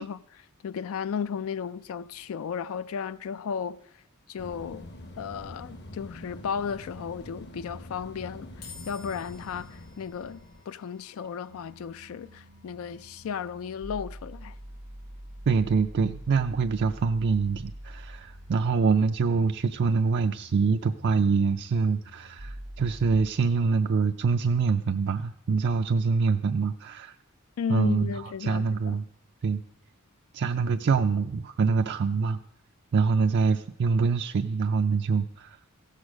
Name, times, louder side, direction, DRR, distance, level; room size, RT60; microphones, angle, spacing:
voice 1, 0.0-4.0 4.3-4.9 5.2-14.6 27.6-29.0, left 7 dB, 65° left, 0.3 m, -34 dB
sound 1, 4.4-10.6, left 1 dB, 50° left, 1.0 m, -45 dB
sound 2, 8.6-21.9, left 6 dB, 80° left, 3.7 m, -57 dB
sound 3, 11.5-23.3, equal, 80° right, 1.1 m, -46 dB
voice 2, 15.5-27.1 27.7-28.1 28.4-29.0 29.4-29.6 30.3-32.4 32.9-35.6, right 5 dB, 50° right, 0.4 m, -25 dB
15.5 x 6.5 x 6.2 m
head